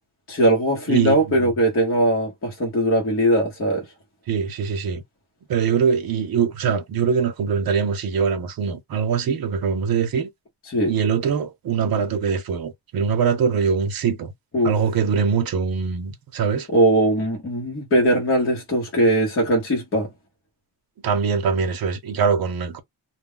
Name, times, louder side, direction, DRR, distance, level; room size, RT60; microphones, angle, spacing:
voice 1, 0.3-3.9 10.7-10.9 14.5-14.7 16.7-20.1, right 1 dB, 30° left, 0.9 m, -20 dB
voice 2, 0.9-1.5 4.3-5.0 5.5-10.3 10.9-14.3 14.6-16.7 21.0-22.8, right 6 dB, 60° right, 0.8 m, -23 dB
2.2 x 2.2 x 3.6 m
wide cardioid pair, 170°, 40 cm